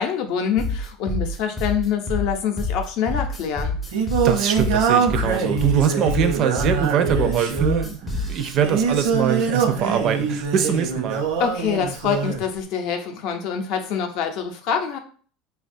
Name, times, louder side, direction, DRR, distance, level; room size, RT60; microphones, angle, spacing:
voice 1, 0.0-3.8 11.4-15.0, left 7 dB, 60° left, 5 dB, 0.5 m, -25 dB
sound 1, 0.6-8.6, left 2 dB, 10° left, 0.4 m, -27 dB
Singing, 3.4-12.4, right 6 dB, 85° right, 0.7 m, -24 dB
voice 2, 4.1-11.3, right 8 dB, 45° right, 9 dB, 0.4 m, -23 dB
3.3 x 2.2 x 2.6 m, 0.43 s
supercardioid pair, 135°, 0 cm